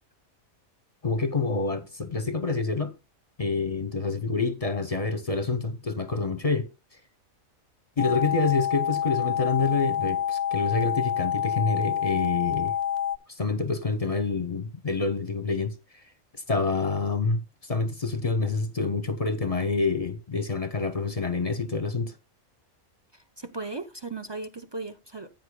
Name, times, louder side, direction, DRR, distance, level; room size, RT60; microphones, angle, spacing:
voice 1, 1.0-2.9 3.4-6.7 8.0-12.7 13.3-15.7 16.5-22.1, left 4 dB, 35° left, 0.7 m, -27 dB
sound 1, 8.0-13.2, left 9 dB, 90° left, 0.3 m, -27 dB
voice 2, 23.1-25.3, right 3 dB, 30° right, 0.5 m, -37 dB
15.0 x 9.1 x 2.2 m
omnidirectional pair, 1.5 m